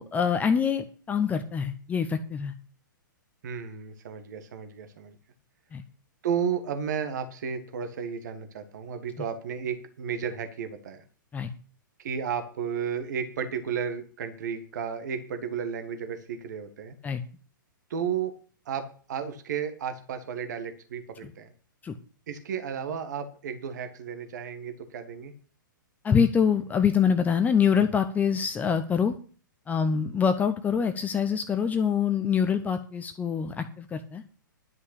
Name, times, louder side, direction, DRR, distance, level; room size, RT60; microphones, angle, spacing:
voice 1, 0.0-2.5 5.7-5.8 11.3-11.5 17.0-17.2 21.8-21.9 26.0-29.2 29.7-34.2, left 7 dB, 15° left, 8 dB, 0.8 m, -25 dB
voice 2, 3.4-5.1 6.2-11.0 12.0-16.9 17.9-18.3 18.6-21.5 22.3-25.3, right 7 dB, 55° right, 8 dB, 1.6 m, -33 dB
11.0 x 5.6 x 8.3 m, 0.41 s
figure-of-eight pair, 115°, 11 cm